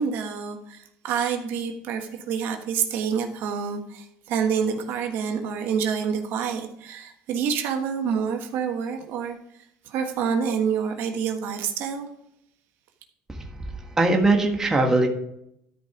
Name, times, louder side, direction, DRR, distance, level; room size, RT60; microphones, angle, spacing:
voice 1, 0.0-9.4 9.9-12.1, right 7 dB, 65° right, 4 dB, 1.5 m, -27 dB
voice 2, 14.0-15.1, right 2 dB, 15° right, 1 dB, 1.6 m, -20 dB
12.5 x 5.3 x 5.0 m, 0.74 s
cardioid pair, 120°, 4 cm